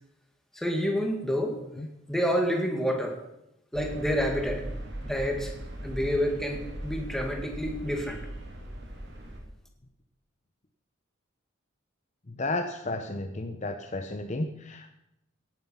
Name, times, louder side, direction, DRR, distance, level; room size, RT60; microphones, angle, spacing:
voice 1, 0.5-1.6 2.1-3.2 3.7-4.6 5.0-5.5 5.8-8.2, equal, ahead, 2 dB, 2.0 m, -28 dB
sound 1, 3.7-9.4, right 1 dB, 60° right, 3.0 m, -39 dB
voice 2, 12.3-14.9, left 2 dB, 35° left, 6 dB, 0.8 m, -33 dB
17.5 x 9.3 x 5.7 m, 0.84 s
head